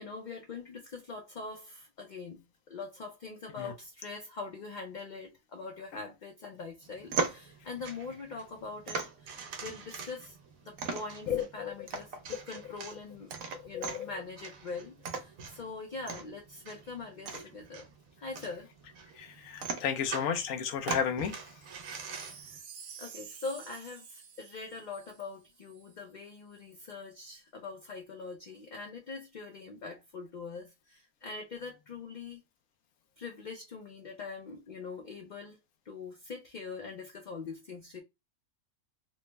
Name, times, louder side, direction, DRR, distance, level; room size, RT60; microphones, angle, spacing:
voice 1, 0.0-10.4 10.6-13.3 13.7-17.9 18.2-18.7 22.3-22.6 23.0-32.4 33.2-35.6 35.9-38.0, left 4 dB, 50° left, 0.6 m, -43 dB
sound 1, 6.8-22.6, right 4 dB, 80° right, 1.1 m, -40 dB
voice 2, 11.3-12.0 12.3-12.4 13.5-14.2 17.3-17.4 19.1-21.7, left 8 dB, 80° left, 1.0 m, -34 dB
Wind chime, 21.6-26.0 26.5-26.6, right 6 dB, 60° right, 0.7 m, -50 dB
3.2 x 2.0 x 3.2 m
omnidirectional pair, 1.4 m